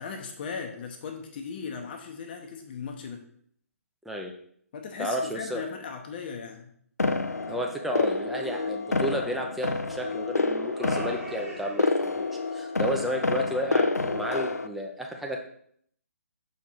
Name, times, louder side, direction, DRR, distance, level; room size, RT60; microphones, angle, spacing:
voice 1, 0.0-3.2 4.7-6.7, left 5 dB, 35° left, 3 dB, 0.8 m, -37 dB
voice 2, 5.0-5.6 7.5-12.3 12.5-15.5, equal, ahead, 1 dB, 0.6 m, -32 dB
sound 1, 7.0-14.7, left 3 dB, 85° left, 0.5 m, -28 dB
sound 2, 8.9-10.0 10.7-12.2, right 1 dB, 70° right, 1.9 m, -42 dB
6.1 x 4.5 x 4.1 m, 0.64 s
figure-of-eight pair, 140°, 8 cm